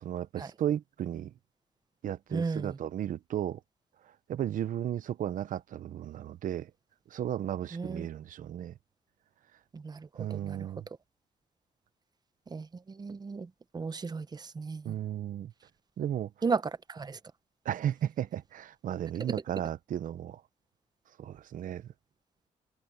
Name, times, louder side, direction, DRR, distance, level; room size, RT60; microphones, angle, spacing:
voice 1, 0.0-1.3 2.0-3.6 4.0-6.7 7.1-8.7 10.1-10.9 14.8-15.5 16.0-16.3 17.6-20.4 21.2-21.9, right 10 dB, 70° right, 0.9 m, -34 dB
voice 2, 2.3-2.8 7.7-8.1 9.7-10.7 12.5-15.0 16.4-16.6 16.9-17.2 19.3-19.4, right 4 dB, 30° right, 0.9 m, -35 dB
cardioid pair, 105°, 14 cm